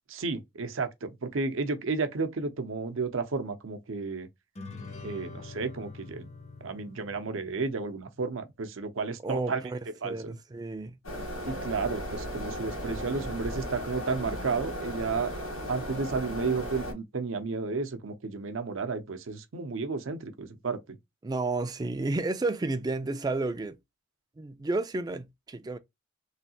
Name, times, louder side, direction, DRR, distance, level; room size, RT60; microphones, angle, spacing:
voice 1, 0.1-4.3 5.0-6.3 6.6-9.6 10.0-10.3 11.5-15.3 15.7-21.0, right 4 dB, 70° right, 0.6 m, -32 dB
sound 1, 4.6-8.2, left 3 dB, 35° left, 0.5 m, -45 dB
voice 2, 9.2-9.8 10.0-11.0 21.2-23.8 24.4-25.8, right 2 dB, 20° right, 0.3 m, -31 dB
sound 2, 11.0-16.9, equal, 85° left, 1.7 m, -36 dB
3.2 x 2.7 x 2.7 m
head